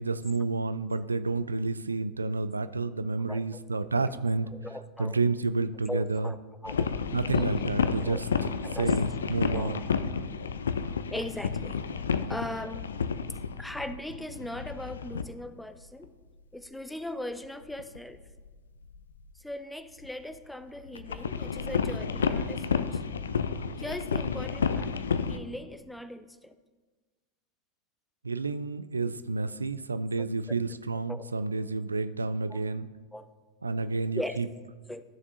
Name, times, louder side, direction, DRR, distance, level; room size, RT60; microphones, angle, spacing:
voice 1, 0.0-4.5 5.0-6.3 7.1-8.3 8.7-9.8 28.2-32.9 33.6-34.5, right 3 dB, 80° right, 13 dB, 0.3 m, -30 dB
voice 2, 3.3-3.6 4.0-4.1 4.5-5.2 5.9-6.4 6.6-7.0 7.3-7.5 8.0-8.2 8.6-8.9 9.5-9.8 11.1-11.8 12.3-12.8 13.6-16.1 16.5-18.2 19.4-23.0 23.8-24.9 25.3-26.6 30.2-30.3 31.1-31.3 32.5-32.6 33.1-33.3 34.1-34.4 34.9-35.0, left 1 dB, 5° left, 11 dB, 0.4 m, -39 dB
sound 1, 6.7-15.3 16.0-16.1 17.7-18.5 18.8-19.2 20.0-20.1 20.3-20.4 20.8-25.4, left 6 dB, 70° left, 0.4 m, -31 dB
13.5 x 6.6 x 2.7 m, 1.4 s
figure-of-eight pair, 90°, 0 cm